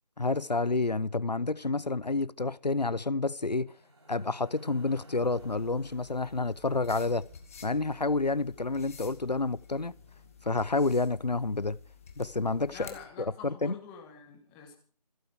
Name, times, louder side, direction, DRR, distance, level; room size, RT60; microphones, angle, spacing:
voice 1, 0.2-3.7 4.1-7.3 7.6-9.9 10.4-11.8 12.2-12.9 13.2-13.8, left 3 dB, 85° left, 0.7 m, -29 dB
sound 1, 3.6-12.9, right 1 dB, 40° right, 3.9 m, -56 dB
sound 2, 5.2-13.1, left 7 dB, 20° left, 1.7 m, -53 dB
voice 2, 12.7-14.7, left 7 dB, 5° left, 1.2 m, -47 dB
27.0 x 9.2 x 5.0 m
figure-of-eight pair, 160°, 21 cm